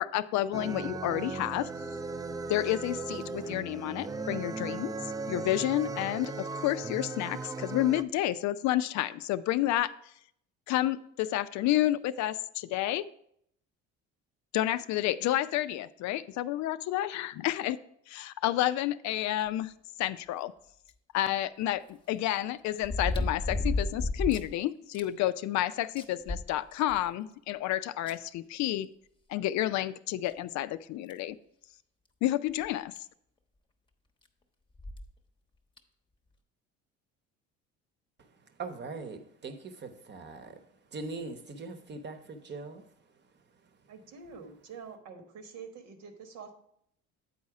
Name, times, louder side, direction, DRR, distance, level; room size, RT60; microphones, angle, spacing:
voice 1, 0.0-1.7 2.5-4.9 5.3-9.9 10.7-13.0 14.5-17.8 18.1-19.7 20.0-20.5 21.1-28.9 29.3-31.4 32.2-32.9, left 14 dB, 65° left, 14 dB, 0.4 m, -30 dB
sound 1, 0.5-8.0, right 4 dB, 15° right, 0.3 m, -37 dB
sound 2, 20.9-21.0 22.8-24.5 24.9-25.0 25.5-25.6 26.0-27.1 28.1-28.2 29.6-29.7 30.3-30.4 31.1-31.3 32.6-32.7 33.0-33.1 34.8-35.1 35.8-35.9, left 2 dB, 15° left, 0.9 m, -32 dB
voice 2, 38.6-40.6 40.9-42.8, right 3 dB, 35° right, 8 dB, 0.9 m, -41 dB
voice 3, 43.9-46.5, right 5 dB, 75° right, 5 dB, 1.3 m, -46 dB
8.5 x 4.2 x 4.8 m, 0.71 s
supercardioid pair, 90°, 30 cm